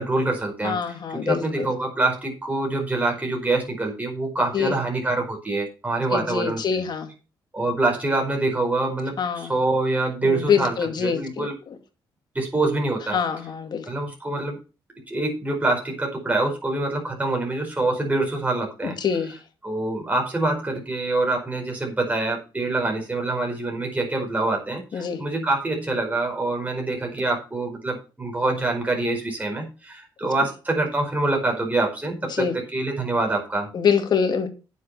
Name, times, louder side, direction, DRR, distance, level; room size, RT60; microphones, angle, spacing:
voice 1, 0.0-6.8 7.5-10.7 11.0-11.5 12.3-13.2 13.9-14.6 15.1-18.9 19.6-33.7, right 2 dB, 20° right, 0 dB, 5.0 m, -25 dB
voice 2, 0.6-1.7 4.5-4.8 6.1-7.1 9.2-9.5 10.2-11.8 13.1-13.9 18.8-19.4 24.9-25.2 32.3-32.5 33.7-34.5, left 6 dB, 60° left, 7 dB, 2.3 m, -25 dB
9.6 x 7.6 x 5.7 m, 0.33 s
cardioid pair, 75°, 8 cm